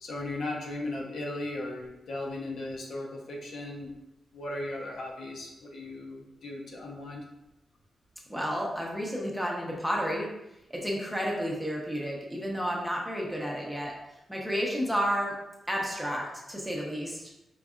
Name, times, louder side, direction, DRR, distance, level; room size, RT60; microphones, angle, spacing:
voice 1, 0.0-3.9 4.3-7.2, left 2 dB, 70° left, -1 dB, 0.8 m, -37 dB
voice 2, 8.3-10.3 10.7-14.0 14.3-15.4 15.7-17.3, equal, ahead, -2 dB, 0.7 m, -31 dB
5.2 x 4.0 x 2.4 m, 0.90 s
wide cardioid pair, 180°, 0 cm